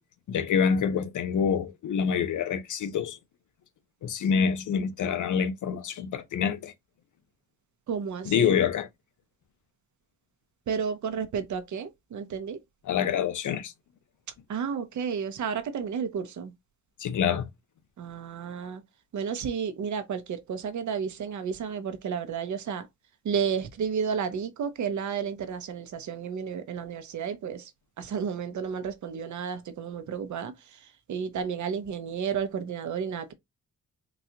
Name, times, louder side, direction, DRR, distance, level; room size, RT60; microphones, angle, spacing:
voice 1, 0.3-3.2 4.0-6.7 8.2-8.9 12.8-13.7 17.0-17.5, left 7 dB, 70° left, 0.7 m, -26 dB
voice 2, 7.9-8.6 10.7-12.6 14.5-16.5 18.0-18.8 19.1-22.8 23.2-27.6 28.0-30.5 31.1-33.3, right 6 dB, 65° right, 0.7 m, -32 dB
4.0 x 2.3 x 2.8 m
wide cardioid pair, 115°, 31 cm